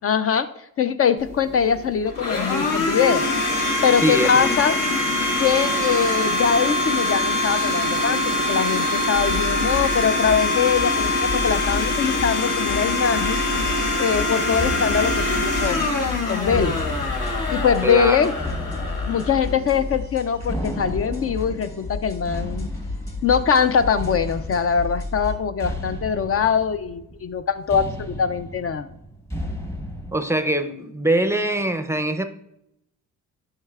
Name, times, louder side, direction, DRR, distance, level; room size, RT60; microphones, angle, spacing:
voice 1, 0.0-0.5 0.8-3.3 3.8-4.8 5.4-13.4 14.0-15.9 16.3-16.8 17.5-18.3 19.1-22.7 23.2-28.9, left 7 dB, 45° left, 11 dB, 0.4 m, -22 dB
Domestic sounds home sounds, 1.2-20.0, left 2 dB, 75° left, 1.6 m, -24 dB
voice 2, 4.0-4.6 17.8-18.3 30.1-32.2, right 1 dB, 10° right, 9 dB, 0.5 m, -23 dB
sound 1, 9.1-25.4, left 3 dB, 30° left, 2.7 m, -33 dB
sound 2, 14.5-30.1, equal, 10° left, 0.9 m, -34 dB
9.6 x 5.5 x 2.4 m, 0.78 s
cardioid pair, 100°, 32 cm